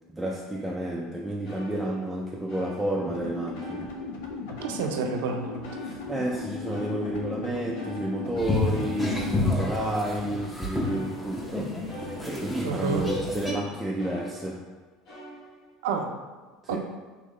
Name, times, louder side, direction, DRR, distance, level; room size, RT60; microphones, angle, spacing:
voice 1, 0.1-3.9 5.8-14.7 16.7-16.8, right 1 dB, 10° right, -2 dB, 0.3 m, -31 dB
sound 1, 1.1-1.2 1.4-3.2 3.5-4.3 4.6-7.4 7.7-13.6 14.0-14.7 15.0-15.8, right 1 dB, 55° left, 1.4 m, -46 dB
sound 2, 3.0-9.4, left 4 dB, 85° left, 0.6 m, -37 dB
voice 2, 4.6-5.6 12.6-13.0 15.8-16.1 16.7-16.8, right 5 dB, 85° right, 4 dB, 0.5 m, -29 dB
sound 3, 8.4-13.5, left 2 dB, 10° left, 0.7 m, -30 dB
4.1 x 2.9 x 3.0 m, 1.3 s
supercardioid pair, 115°, 0 cm